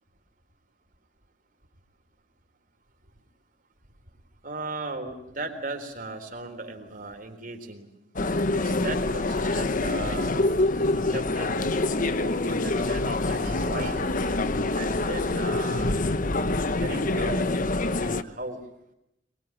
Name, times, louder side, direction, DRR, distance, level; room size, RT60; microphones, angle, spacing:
voice 1, 4.4-7.9 8.5-10.5 10.9-11.7 12.2-14.0 14.7-16.0 16.8-17.5 18.0-18.6, right 2 dB, 50° right, 5 dB, 4.0 m, -37 dB
sound 1, 8.2-18.2, left 2 dB, 45° left, 1.1 m, -26 dB
24.0 x 22.0 x 9.2 m, 0.81 s
head